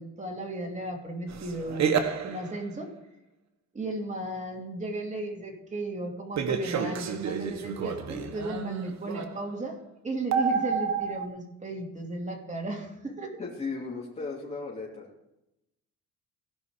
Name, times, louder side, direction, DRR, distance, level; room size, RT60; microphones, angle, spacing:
voice 1, 0.0-2.9 3.7-9.8 10.0-13.4, right 2 dB, 25° right, 0 dB, 2.8 m, -35 dB
sound 1, 1.3-2.7 6.3-9.5 10.3-11.3, right 6 dB, 65° right, 1.3 m, -30 dB
voice 2, 13.4-15.1, left 4 dB, 20° left, -4 dB, 3.0 m, -36 dB
16.5 x 5.6 x 5.0 m, 0.88 s
cardioid pair, 90°, 30 cm